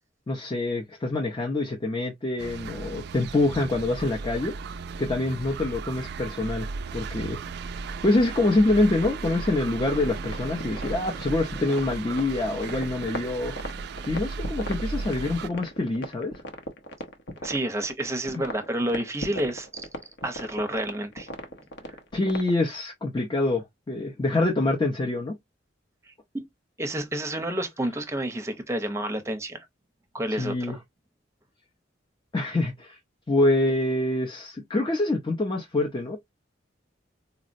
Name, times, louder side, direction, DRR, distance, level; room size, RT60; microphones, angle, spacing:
voice 1, 0.3-4.5 5.0-7.4 8.0-13.5 14.1-16.3 18.3-18.4 22.1-25.3 30.3-30.8 32.3-33.0 33.3-36.2, left 2 dB, 25° left, 0.5 m, -25 dB
sound 1, 2.4-15.5, right 4 dB, 60° right, 0.3 m, -36 dB
sound 2, 9.8-22.6, equal, 65° left, 0.7 m, -38 dB
voice 2, 17.4-19.8 20.2-21.3 26.8-29.7 30.1-30.8, right 1 dB, 15° right, 0.6 m, -29 dB
4.0 x 2.0 x 2.5 m
head